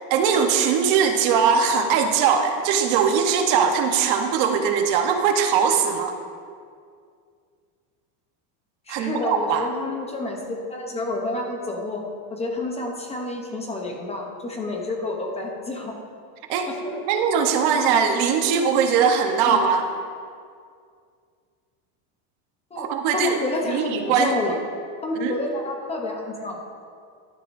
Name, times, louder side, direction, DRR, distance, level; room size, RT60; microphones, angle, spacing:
voice 1, 0.1-6.1 8.9-9.7 16.5-19.8 22.8-23.4 23.7-24.6 25.2-25.4, right 6 dB, 55° right, 5 dB, 1.0 m, -21 dB
voice 2, 8.9-12.0 12.3-16.0 16.7-17.0 19.5-19.6 22.7-24.6 25.0-26.6, left 2 dB, 15° left, 1 dB, 0.8 m, -29 dB
12.5 x 10.5 x 2.6 m, 2.2 s
cardioid pair, 160°, 46 cm